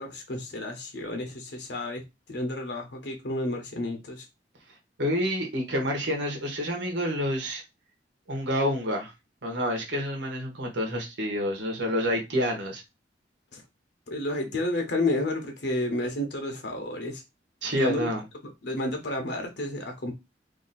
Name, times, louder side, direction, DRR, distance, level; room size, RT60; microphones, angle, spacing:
voice 1, 0.0-2.0 2.3-4.2 13.5-13.6 14.1-17.2 17.7-18.1 18.6-20.1, left 1 dB, 70° left, 1.0 m, -31 dB
voice 2, 5.0-7.6 8.3-9.1 9.4-12.8 17.6-18.2, equal, 85° right, 1.2 m, -28 dB
2.8 x 2.7 x 4.1 m
head